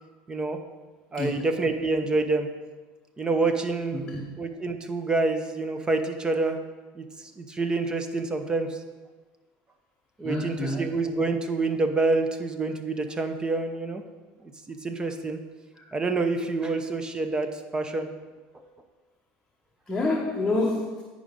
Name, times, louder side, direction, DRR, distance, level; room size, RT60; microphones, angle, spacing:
voice 1, 0.3-0.6 1.1-2.5 3.2-4.1 4.4-6.6 6.9-8.8 10.2-14.0 14.7-15.4 15.9-18.1, right 3 dB, 20° right, 7 dB, 0.8 m, -27 dB
voice 2, 10.2-10.9 15.8-15.9 19.9-21.0, left 2 dB, 15° left, -1 dB, 1.1 m, -28 dB
10.0 x 5.0 x 5.3 m, 1.3 s
supercardioid pair, 115°, 4 cm